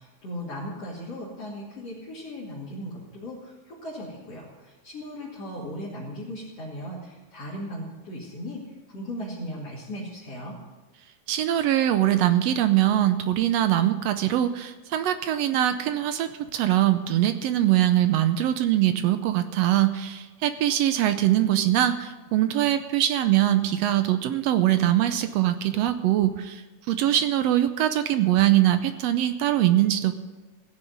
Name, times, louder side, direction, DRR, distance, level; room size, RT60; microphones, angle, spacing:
voice 1, 0.0-8.6 8.9-10.6, equal, 55° left, -7 dB, 3.6 m, -37 dB
voice 2, 11.3-26.6 26.9-30.1, right 12 dB, 75° right, 10 dB, 1.6 m, -22 dB
16.5 x 6.9 x 8.7 m, 1.2 s
omnidirectional pair, 3.4 m